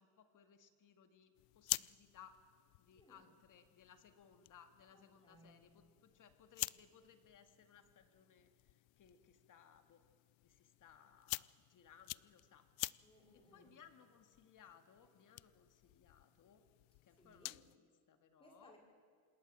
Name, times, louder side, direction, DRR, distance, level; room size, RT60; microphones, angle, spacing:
voice 1, 0.0-2.4 2.8-10.0 10.4-12.7 13.5-16.6 17.0-18.8, left 7 dB, 40° left, 8 dB, 2.2 m, -64 dB
sound 1, 1.3-17.8, left 23 dB, 75° left, 0.6 m, -49 dB
voice 2, 4.9-5.5 13.0-13.7 17.2-17.6 18.4-18.8, equal, 10° left, 0 dB, 5.2 m, -65 dB
27.5 x 20.0 x 7.6 m, 2.3 s
cardioid pair, 155°, 47 cm